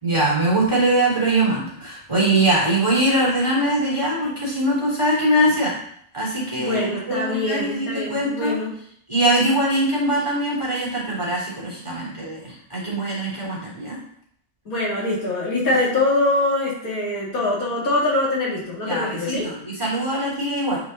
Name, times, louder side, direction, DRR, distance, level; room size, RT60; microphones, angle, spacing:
voice 1, 0.0-5.7 6.1-8.6 9.1-14.0 18.8-20.8, right 1 dB, 20° right, -5 dB, 3.1 m, -22 dB
voice 2, 6.6-8.8 13.4-13.5 14.7-19.5, left 2 dB, 80° left, -4 dB, 2.6 m, -23 dB
8.2 x 5.0 x 3.9 m, 0.65 s
omnidirectional pair, 1.5 m